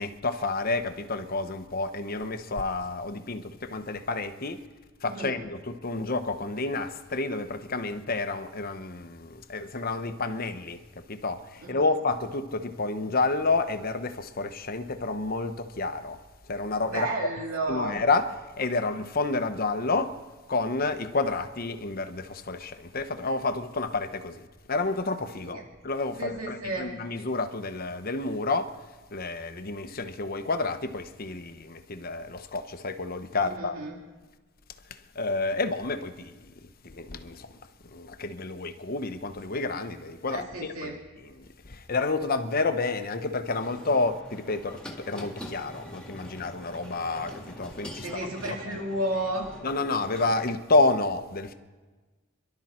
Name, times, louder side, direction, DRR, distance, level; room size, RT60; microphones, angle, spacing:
voice 1, 0.0-4.6 5.0-16.2 16.5-17.1 17.7-18.3 18.6-20.1 20.5-28.7 29.1-33.8 35.1-36.3 36.8-37.5 37.8-40.9 41.3-48.1 48.7-48.8 49.6-51.5, left 3 dB, 45° left, 0.9 m, -29 dB
voice 2, 5.0-5.4 11.6-11.8 16.9-18.0 25.5-25.6 26.2-26.9 33.4-33.9 40.3-41.0 48.0-49.5, right 1 dB, 85° right, 2.4 m, -32 dB
sound 1, 43.5-50.5, equal, 5° left, 1.9 m, -44 dB
26.5 x 12.0 x 4.4 m
head